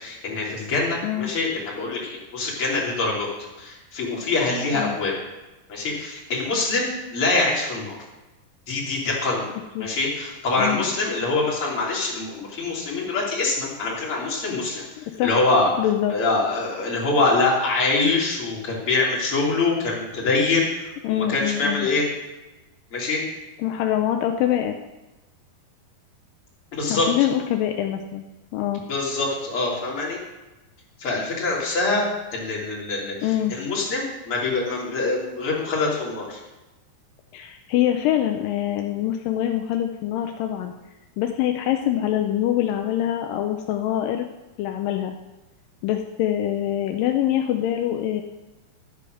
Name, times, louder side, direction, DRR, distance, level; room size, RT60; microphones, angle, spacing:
voice 1, 0.0-3.3 3.6-5.1 5.7-8.0 8.7-9.5 9.8-14.8 15.2-15.7 16.1-22.1 22.9-23.2 26.7-27.1 28.9-30.2 31.0-32.0 32.3-36.4, left 3 dB, 35° left, -5 dB, 3.8 m, -24 dB
voice 2, 15.0-15.4 15.8-16.2 21.0-21.9 23.6-24.8 26.9-28.2 28.5-28.8 31.7-31.8 33.2-33.6 37.3-40.7 41.2-44.3 44.6-45.1 45.8-48.2, left 12 dB, 80° left, 4 dB, 2.0 m, -24 dB
12.5 x 8.5 x 6.4 m, 1.1 s
omnidirectional pair, 4.7 m